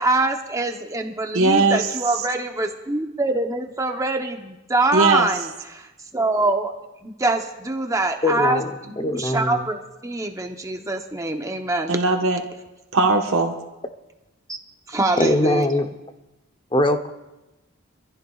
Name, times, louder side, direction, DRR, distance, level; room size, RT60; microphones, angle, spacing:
voice 1, 0.0-6.7 7.0-12.0 14.5-14.6 14.9-15.7, right 2 dB, 15° right, 4 dB, 0.9 m, -24 dB
voice 2, 1.3-1.9 4.9-5.3 11.9-12.4 12.9-13.6, right 3 dB, 90° right, 2 dB, 1.3 m, -19 dB
voice 3, 8.2-8.7 9.0-9.6 15.2-15.9 16.7-17.1, left 1 dB, 25° left, 7 dB, 0.8 m, -21 dB
25.0 x 14.5 x 2.4 m, 1.0 s
head